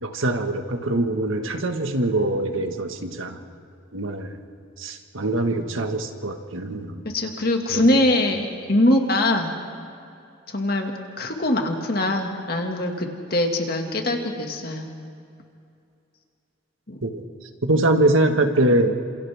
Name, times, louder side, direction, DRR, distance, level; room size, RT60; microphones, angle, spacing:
voice 1, 0.0-3.4 3.9-4.4 4.8-7.0 7.7-8.0 17.0-17.2 17.6-19.0, right 1 dB, 90° right, 5 dB, 1.7 m, -23 dB
voice 2, 7.0-9.5 10.5-14.9 16.9-17.0, left 1 dB, 50° left, 3 dB, 2.1 m, -22 dB
29.0 x 27.0 x 3.6 m, 2.5 s
head